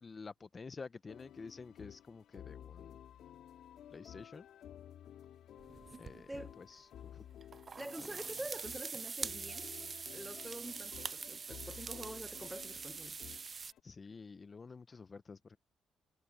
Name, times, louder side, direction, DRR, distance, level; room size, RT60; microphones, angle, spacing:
voice 1, 0.0-3.0 3.9-4.5 6.0-7.2 8.0-8.2 13.8-15.6, left 4 dB, 35° left, 0.8 m, -50 dB
sound 1, 1.1-13.8, left 10 dB, 75° left, 2.4 m, -54 dB
sound 2, 5.6-6.4 7.4-13.7, right 5 dB, 40° right, 0.4 m, -44 dB
voice 2, 6.3-6.6 7.8-9.7 10.1-13.2, right 1 dB, 10° right, 1.3 m, -46 dB
cardioid pair, 90°, 0 cm